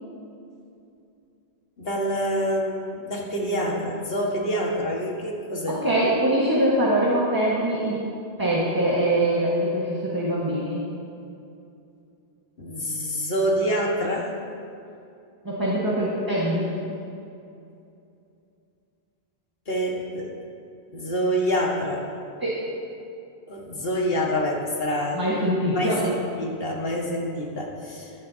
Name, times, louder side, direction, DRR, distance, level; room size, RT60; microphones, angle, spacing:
voice 1, 1.8-5.8 12.6-14.3 19.7-20.3 20.9-22.1 23.5-25.2 25.7-28.1, equal, 70° left, -1 dB, 1.9 m, -26 dB
voice 2, 5.7-8.0 8.4-10.8 15.5-16.7 22.4-22.6 25.1-26.0, right 1 dB, 20° right, -7 dB, 1.6 m, -23 dB
15.0 x 14.0 x 2.8 m, 2.6 s
omnidirectional pair, 1.0 m